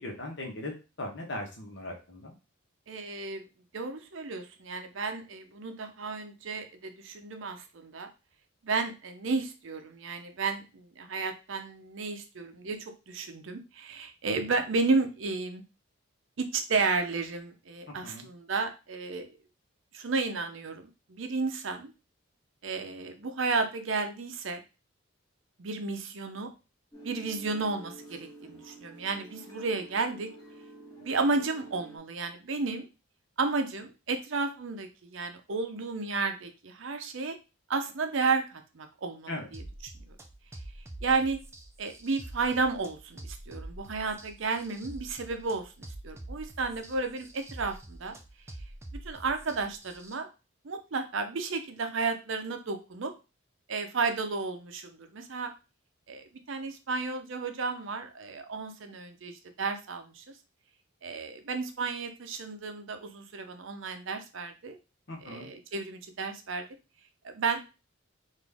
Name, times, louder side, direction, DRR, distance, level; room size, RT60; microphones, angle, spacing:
voice 1, 0.0-2.3 17.9-18.3 39.3-39.5 65.1-65.5, left 1 dB, 55° left, 1 dB, 1.1 m, -39 dB
voice 2, 2.9-3.4 3.7-8.1 8.6-15.6 16.4-19.3 19.9-21.9 22.6-24.6 25.6-26.5 27.0-30.3 31.0-32.9 33.4-37.4 37.7-39.6 40.1-40.2 41.0-41.4 41.8-48.1 49.0-50.3 50.6-53.1 53.7-55.5 56.1-60.2 61.0-64.8 65.2-66.6 67.3-67.6, right 4 dB, 65° right, 7 dB, 0.6 m, -32 dB
sound 1, 26.9-32.0, right 2 dB, 20° left, 1.5 m, -49 dB
sound 2, 39.5-50.1, right 1 dB, 15° right, 0.3 m, -46 dB
4.0 x 2.6 x 3.4 m, 0.29 s
head